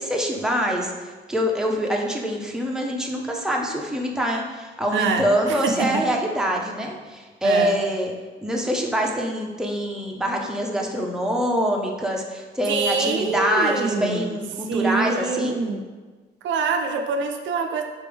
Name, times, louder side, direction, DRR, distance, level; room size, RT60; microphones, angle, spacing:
voice 1, 0.0-8.1 8.4-15.6, equal, 5° right, 0 dB, 0.6 m, -25 dB
voice 2, 4.9-6.0 7.4-7.7 12.7-14.3 14.7-15.8 16.4-17.8, right 4 dB, 70° right, 4 dB, 0.4 m, -25 dB
4.3 x 3.4 x 3.4 m, 1.3 s
cardioid pair, 90°, 20 cm